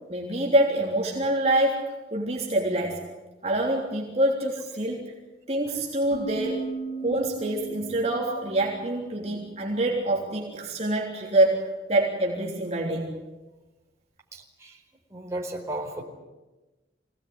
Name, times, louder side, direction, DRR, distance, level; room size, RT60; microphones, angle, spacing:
voice 1, 0.1-1.8 2.1-3.0 3.4-5.0 5.5-6.6 7.0-13.2, right 1 dB, 35° right, -2 dB, 3.4 m, -25 dB
sound 1, 6.1-9.7, right 4 dB, 50° left, 6.1 m, -37 dB
voice 2, 14.3-14.8 15.1-16.0, right 1 dB, 15° right, -1 dB, 4.5 m, -34 dB
25.0 x 18.5 x 9.6 m, 1.1 s
head